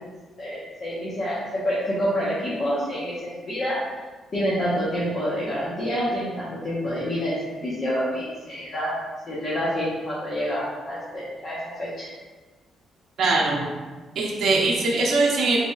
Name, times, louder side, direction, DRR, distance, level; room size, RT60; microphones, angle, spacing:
voice 1, 0.4-3.8 4.3-8.9 9.2-12.1, equal, 45° left, -8 dB, 1.0 m, -27 dB
voice 2, 13.2-13.6 14.2-15.7, right 3 dB, 65° right, -3 dB, 0.6 m, -21 dB
3.7 x 3.3 x 2.3 m, 1.4 s
cardioid pair, 90°, 0 cm